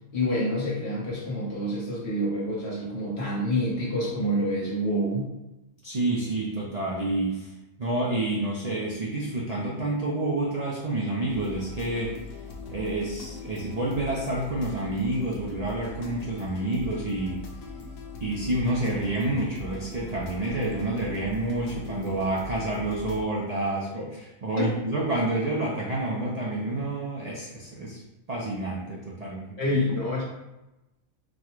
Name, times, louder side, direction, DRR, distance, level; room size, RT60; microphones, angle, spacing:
voice 1, 0.1-5.3 24.6-24.7 29.6-30.2, equal, 55° left, -4 dB, 1.3 m, -27 dB
voice 2, 5.8-7.5 7.8-12.2 12.7-17.4 18.2-24.1 24.4-28.0 28.3-29.6, right 2 dB, 50° right, -3 dB, 0.5 m, -28 dB
sound 1, 11.3-23.2, left 4 dB, 90° left, 1.2 m, -40 dB
4.2 x 2.2 x 4.5 m, 0.99 s
omnidirectional pair, 1.4 m